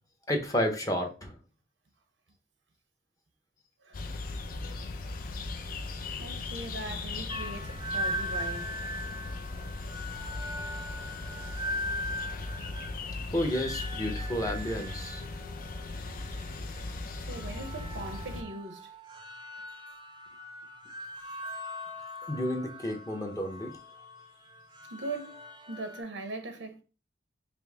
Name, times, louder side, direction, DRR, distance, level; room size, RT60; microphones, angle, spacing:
voice 1, 0.3-1.3 13.3-15.2 22.3-23.7, left 1 dB, 20° left, 0.7 m, -31 dB
voice 2, 3.8-4.2 6.2-8.8 9.4-9.5 17.2-18.9 24.9-26.8, right 2 dB, 90° right, 0.8 m, -40 dB
sound 1, 3.9-18.4, left 3 dB, 50° left, 0.4 m, -38 dB
sound 2, 7.3-26.0, equal, 25° right, 0.5 m, -40 dB
5.1 x 2.0 x 3.5 m
head